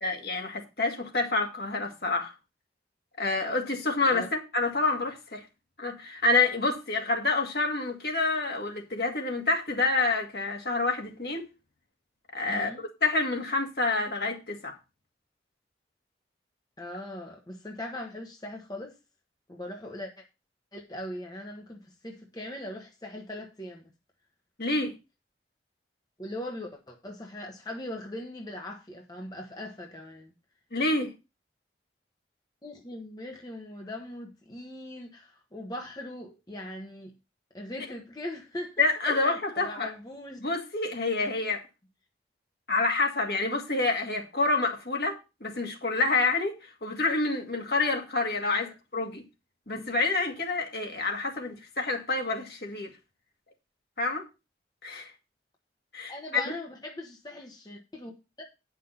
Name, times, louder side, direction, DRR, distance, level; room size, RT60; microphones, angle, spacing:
voice 1, 0.0-2.3 3.2-5.4 5.8-11.4 12.3-12.7 13.0-14.7 24.6-24.9 30.7-31.1 38.8-39.9 40.4-41.6 42.7-49.2 49.7-52.9 54.0-54.3 54.8-55.1 55.9-56.4, left 3 dB, 65° left, 2.1 m, -28 dB
voice 2, 12.5-12.8 16.8-18.9 19.5-20.2 20.7-23.9 26.2-30.3 32.6-37.1 37.5-40.4 48.4-48.7 56.1-58.4, left 1 dB, 20° left, 1.3 m, -40 dB
9.5 x 5.9 x 5.6 m
head